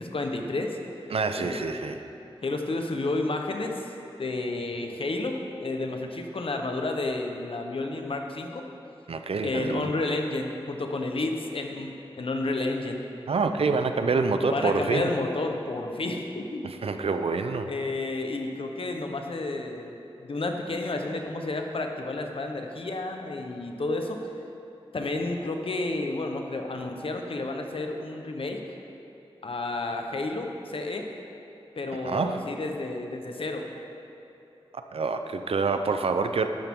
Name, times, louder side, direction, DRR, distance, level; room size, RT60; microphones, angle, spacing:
voice 1, 0.0-1.1 1.4-1.8 2.4-3.9 4.2-8.7 9.4-13.0 14.5-16.6 17.7-19.9 20.2-24.2 24.9-28.6 29.4-31.1 31.8-33.7, left 2 dB, 65° left, 3 dB, 1.1 m, -31 dB
voice 2, 1.1-2.0 9.1-9.9 13.3-15.1 16.6-17.7 32.0-32.5 34.7-36.5, right 4 dB, 75° right, 7 dB, 0.6 m, -27 dB
12.5 x 10.5 x 3.8 m, 2.8 s
wide cardioid pair, 65°, 10 cm